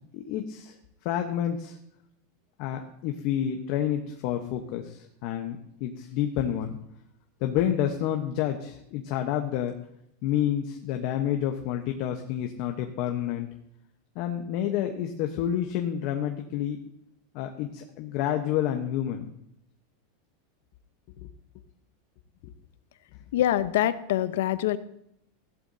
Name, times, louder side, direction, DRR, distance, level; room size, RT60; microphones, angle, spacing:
voice 1, 0.1-0.8 1.0-1.8 2.6-6.8 7.4-9.7 10.2-13.5 14.1-16.8 17.3-19.3 22.4-22.5, left 10 dB, 50° left, 4 dB, 1.0 m, -29 dB
voice 2, 23.3-24.8, left 12 dB, 75° left, 13 dB, 0.7 m, -24 dB
15.0 x 11.5 x 2.8 m, 0.77 s
supercardioid pair, 150°, 0 cm